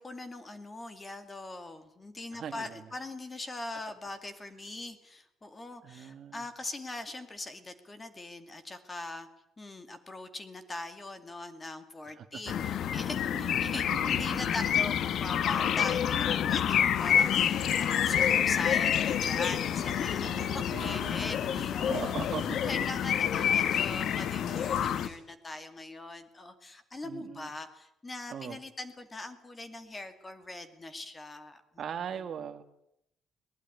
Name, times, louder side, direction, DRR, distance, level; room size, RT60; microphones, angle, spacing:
voice 1, 0.0-9.3 9.6-22.2 22.6-31.6 32.0-32.2, left 2 dB, 15° left, 9 dB, 2.3 m, -41 dB
voice 2, 2.3-2.8 5.8-6.4 12.1-12.7 13.3-14.5 20.0-21.3 21.5-22.6 27.0-27.5 28.3-28.6 31.8-32.6, right 8 dB, 45° right, 9 dB, 1.9 m, -41 dB
sound 1, 12.5-25.1, left 9 dB, 55° left, 1.1 m, -28 dB
Speech, 17.0-25.2, left 5 dB, 70° left, 6.7 m, -43 dB
21.5 x 20.0 x 9.7 m, 0.77 s
cardioid pair, 170°, 0 cm